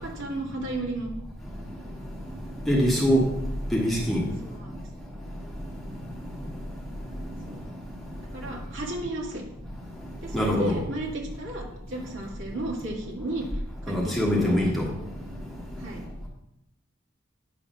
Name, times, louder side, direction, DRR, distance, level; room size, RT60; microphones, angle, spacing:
voice 1, 0.0-1.1 4.2-4.8 7.5-7.6 8.3-9.4 10.2-13.5 13.8-14.6 15.8-16.0, right 2 dB, 75° right, -3 dB, 2.1 m, -34 dB
voice 2, 2.7-3.2 3.7-4.2 10.3-10.8 13.9-14.9, equal, ahead, -5 dB, 1.3 m, -23 dB
9.3 x 3.2 x 6.1 m, 0.85 s
head